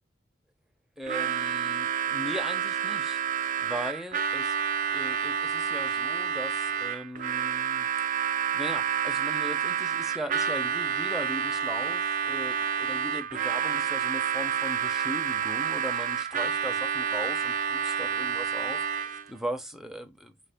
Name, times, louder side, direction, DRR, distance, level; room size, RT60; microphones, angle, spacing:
voice 1, 1.0-4.5 4.9-8.1 8.5-20.3, equal, ahead, 0.8 m, -38 dB
Harmonica, 1.0-19.3, right 7 dB, 45° right, 0.4 m, -29 dB
4.8 x 2.3 x 3.4 m
head